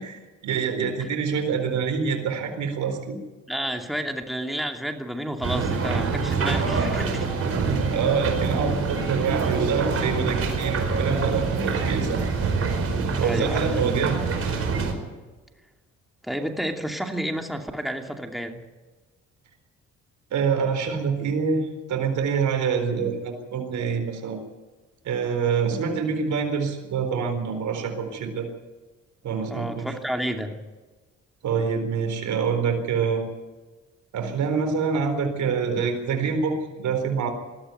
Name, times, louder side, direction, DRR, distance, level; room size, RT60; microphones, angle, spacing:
voice 1, 0.0-3.2 7.9-12.2 13.2-14.2 20.3-24.4 25.0-28.5 29.2-29.9 31.4-33.3 34.1-37.3, right 6 dB, 70° right, 5 dB, 4.2 m, -26 dB
voice 2, 3.5-7.3 13.2-13.8 16.2-18.6 29.5-30.6, equal, ahead, 3 dB, 2.6 m, -30 dB
sound 1, 5.4-14.9, right 4 dB, 50° right, 4.8 m, -25 dB
21.0 x 14.0 x 9.3 m, 1.3 s
cardioid pair, 90°, 30 cm